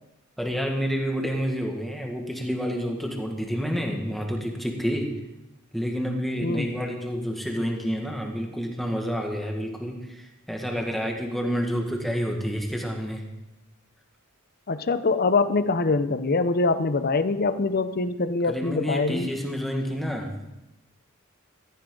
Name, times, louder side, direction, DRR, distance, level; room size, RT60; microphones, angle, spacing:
voice 1, 0.4-5.1 5.7-13.2 18.5-20.4, equal, ahead, 1 dB, 1.8 m, -29 dB
voice 2, 14.7-19.3, left 3 dB, 45° left, 12 dB, 0.7 m, -24 dB
15.0 x 14.0 x 3.9 m, 0.94 s
head